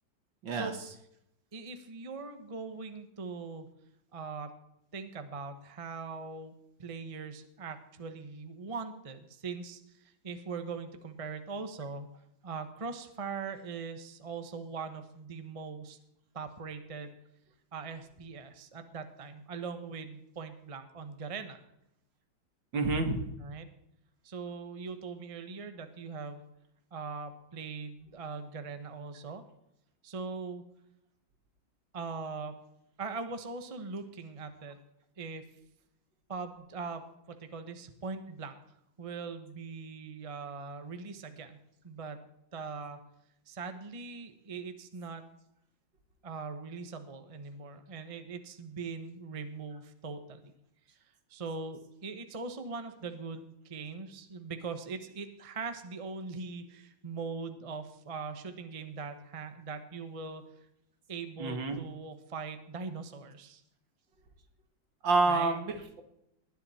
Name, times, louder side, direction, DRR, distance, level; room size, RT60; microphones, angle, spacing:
voice 1, 1.5-3.7 4.1-4.5 4.9-6.5 6.8-12.1 12.4-16.0 16.3-17.1 17.7-21.6 23.4-23.7 24.2-26.4 26.9-29.4 30.0-30.6 31.9-32.6 33.0-34.8 35.2-35.4 36.3-38.6 39.0-41.6 41.8-42.2 42.5-43.0 43.5-45.2 46.2-50.5 51.3-60.4 61.1-63.6 65.2-65.5, right 4 dB, 20° right, 8 dB, 0.9 m, -41 dB
voice 2, 22.7-23.2 61.4-61.8 65.0-66.0, right 3 dB, 65° right, 7 dB, 2.4 m, -28 dB
19.5 x 10.5 x 4.3 m, 0.80 s
omnidirectional pair, 2.2 m